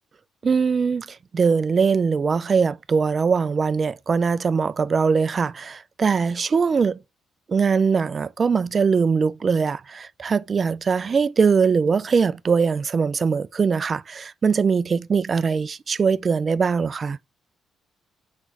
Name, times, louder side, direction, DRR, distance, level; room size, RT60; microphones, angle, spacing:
voice 1, 0.4-7.0 7.5-17.2, right 5 dB, 40° right, 0.4 m, -21 dB
6.1 x 5.2 x 4.6 m
cardioid pair, 90°, 0 cm